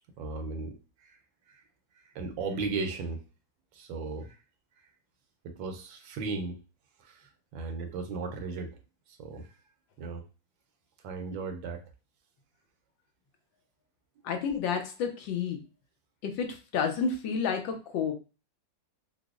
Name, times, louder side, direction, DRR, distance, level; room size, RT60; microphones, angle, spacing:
voice 1, 0.2-0.7 1.0-1.2 1.5-1.6 2.1-3.2 3.7-4.4 5.4-6.6 7.0-8.8 9.1-9.5 10.0-10.2 11.0-11.8, right 4 dB, 85° right, 5 dB, 1.4 m, -36 dB
voice 2, 14.2-15.6 16.2-18.1, left 6 dB, 90° left, 5 dB, 1.4 m, -30 dB
4.9 x 2.0 x 2.4 m, 0.31 s
omnidirectional pair, 2.0 m